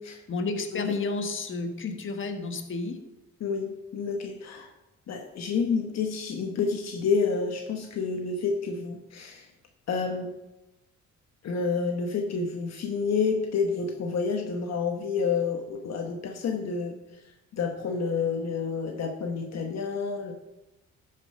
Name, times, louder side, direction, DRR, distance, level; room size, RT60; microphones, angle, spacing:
voice 1, 0.3-3.0, left 3 dB, 40° left, 5 dB, 1.4 m, -31 dB
voice 2, 3.4-4.7 5.1-9.5 9.9-10.3 11.4-16.9 17.5-20.3, left 5 dB, 60° left, 3 dB, 1.1 m, -29 dB
12.0 x 5.3 x 5.4 m, 0.98 s
cardioid pair, 90°, 30 cm